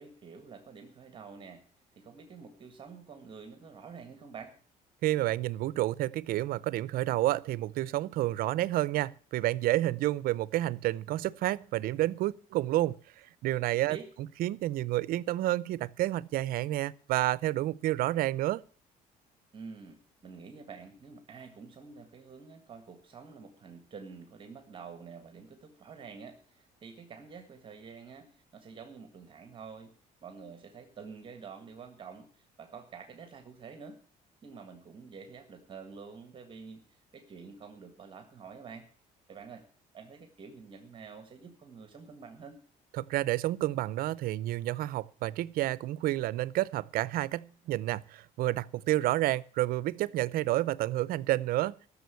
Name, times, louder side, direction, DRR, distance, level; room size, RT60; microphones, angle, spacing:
voice 1, 0.0-1.6 1.9-4.6 13.9-14.1 19.5-29.9 30.2-34.0 34.4-38.9 39.3-39.6 39.9-42.6, right 5 dB, 35° right, 1.8 m, -48 dB
voice 2, 5.0-14.0 14.4-18.6 43.0-51.7, right 15 dB, 70° right, 0.5 m, -30 dB
14.0 x 7.0 x 8.2 m
cardioid pair, 135°, 16 cm